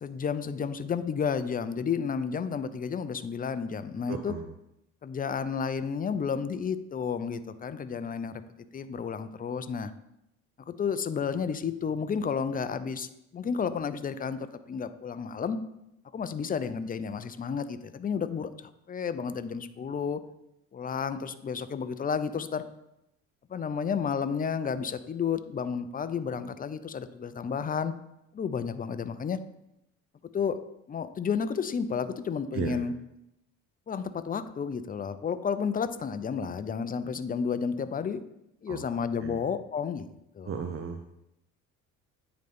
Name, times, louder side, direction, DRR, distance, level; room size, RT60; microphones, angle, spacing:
voice 1, 0.0-4.3 5.0-8.4 8.7-9.9 10.7-15.6 16.1-20.2 20.7-22.6 23.5-27.9 28.3-29.4 30.3-30.6 30.9-32.9 33.9-38.2 38.6-40.0 40.3-40.6, left 6 dB, 25° left, 12 dB, 0.5 m, -31 dB
voice 2, 4.1-4.5 32.5-32.9 38.7-38.9 39.2-39.4 40.4-41.2, right 6 dB, 35° right, 6 dB, 0.6 m, -35 dB
9.1 x 3.9 x 3.5 m, 0.83 s
hypercardioid pair, 65°, 38 cm